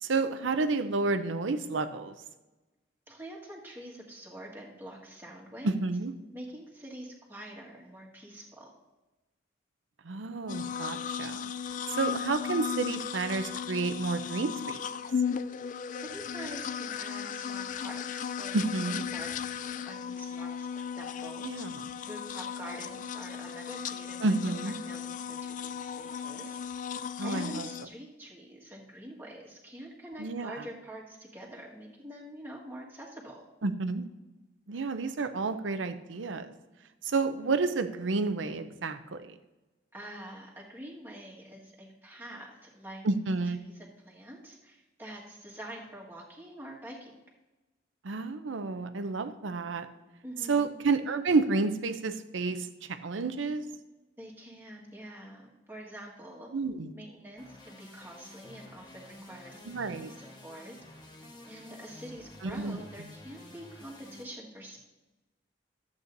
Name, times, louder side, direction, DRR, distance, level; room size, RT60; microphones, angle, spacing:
voice 1, 0.0-2.2 5.6-6.1 10.0-11.5 11.9-14.8 18.5-19.0 21.4-21.8 24.2-24.8 27.2-27.7 30.2-30.5 33.6-34.1 34.7-36.5 37.0-39.4 43.0-43.6 48.0-49.9 50.5-53.6 56.5-56.9 59.7-60.1 62.4-62.8, right 3 dB, 80° right, 10 dB, 0.6 m, -30 dB
voice 2, 3.1-5.8 6.3-8.7 15.9-21.4 22.0-24.4 24.8-33.4 39.9-43.1 43.6-47.2 50.2-50.7 54.2-56.5 56.9-60.8 61.5-64.8, right 1 dB, 10° right, -3 dB, 1.7 m, -46 dB
sound 1, 10.5-27.8, left 7 dB, 45° left, 0.3 m, -36 dB
sound 2, 57.4-64.2, left 1 dB, 25° left, 1.2 m, -51 dB
13.5 x 8.2 x 2.7 m, 1.1 s
head